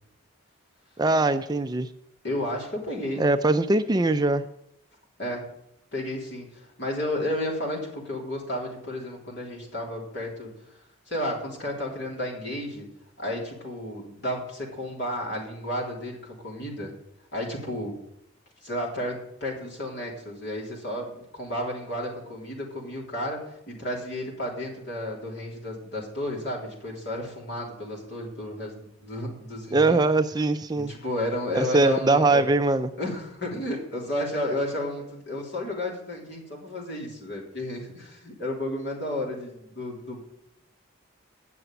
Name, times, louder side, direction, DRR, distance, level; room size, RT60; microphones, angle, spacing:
voice 1, 1.0-1.9 3.2-4.4 29.7-30.9 31.6-32.9, right 2 dB, 20° right, 9 dB, 0.4 m, -22 dB
voice 2, 2.2-3.3 5.2-5.5 5.9-12.9 13.2-16.9 17.3-18.0 18.6-30.0 30.8-32.4 33.0-40.2, left 1 dB, 55° left, -2 dB, 3.6 m, -32 dB
9.7 x 6.8 x 9.0 m, 0.79 s
head